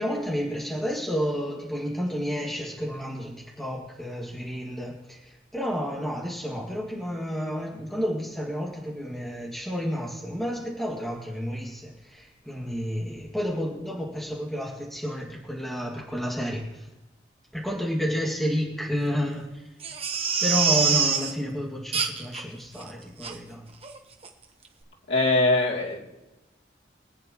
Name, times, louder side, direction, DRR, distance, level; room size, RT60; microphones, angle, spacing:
voice 1, 0.0-16.9 17.5-19.6 20.4-23.7, equal, ahead, -3 dB, 2.0 m, -31 dB
Crying sobbing, 19.8-21.3 21.9-22.4 22.8-22.9 23.2-23.3 23.8-24.0 24.2-24.3, right 6 dB, 35° right, 1.1 m, -25 dB
voice 2, 25.1-26.1, left 2 dB, 85° left, -3 dB, 2.8 m, -22 dB
24.5 x 8.7 x 3.0 m, 1.0 s
head